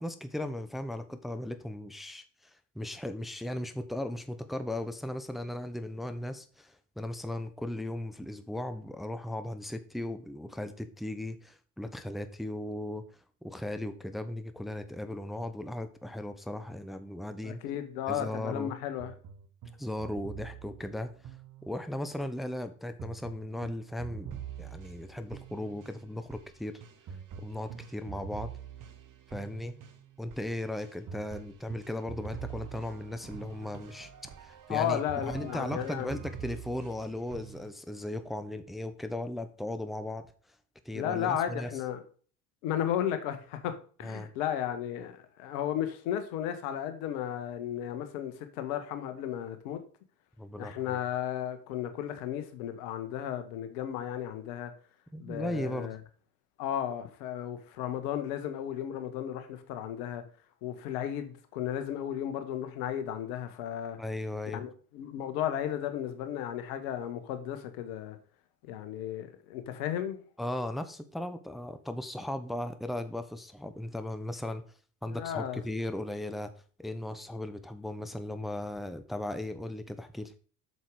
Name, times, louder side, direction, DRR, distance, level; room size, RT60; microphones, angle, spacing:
voice 1, 0.0-17.6 18.1-18.7 19.8-21.4 21.6-26.8 27.4-28.5 29.3-29.8 30.2-34.1 34.4-40.3 40.8-41.7 44.0-44.3 50.4-51.0 55.1-56.0 64.0-64.6 70.4-74.6 75.0-76.5 76.8-80.3, left 1 dB, ahead, 1.0 m, -37 dB
voice 2, 17.4-19.1 34.7-36.2 40.9-42.0 42.6-49.8 50.6-54.7 55.2-56.0 56.6-60.2 60.6-64.0 64.5-68.2 68.7-70.2 75.1-75.6, left 10 dB, 65° left, 1.7 m, -34 dB
sound 1, 19.0-22.1 23.0-37.7, right 7 dB, 40° right, 1.5 m, -45 dB
8.0 x 6.5 x 4.8 m
hypercardioid pair, 65°, 48 cm